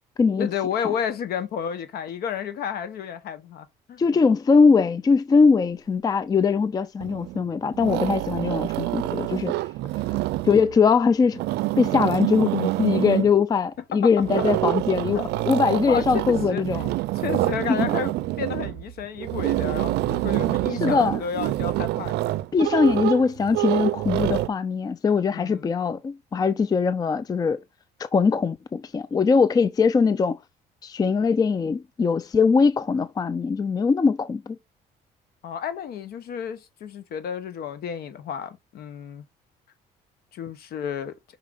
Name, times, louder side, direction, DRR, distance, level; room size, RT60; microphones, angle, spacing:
voice 1, 0.4-4.2 13.9-14.5 15.1-15.2 15.9-16.6 17.1-22.4 25.3-25.7 35.4-39.2 40.3-41.1, left 8 dB, 65° left, 1.1 m, -32 dB
voice 2, 4.0-9.5 10.4-11.4 11.8-15.2 15.5-16.9 17.7-17.8 20.8-21.2 22.5-27.6 28.0-30.4 30.8-34.6, left 5 dB, 20° left, 0.4 m, -21 dB
sound 1, 7.0-7.4 7.7-10.8 11.2-13.4 14.2-24.5, right 17 dB, 75° right, 0.4 m, -26 dB
5.6 x 4.6 x 3.8 m
cardioid pair, 110°, 17 cm